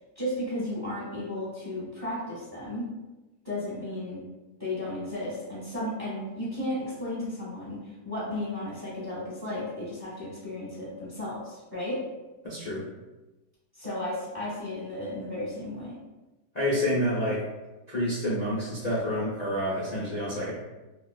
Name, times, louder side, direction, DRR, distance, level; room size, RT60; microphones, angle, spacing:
voice 1, 0.2-2.8 3.4-4.2 4.6-12.0 13.8-15.9, left 1 dB, 15° right, -8 dB, 0.8 m, -34 dB
voice 2, 12.4-12.8 16.5-17.4 17.9-20.5, equal, 65° left, -9 dB, 0.4 m, -28 dB
4.4 x 2.2 x 2.3 m, 1.1 s
omnidirectional pair, 1.9 m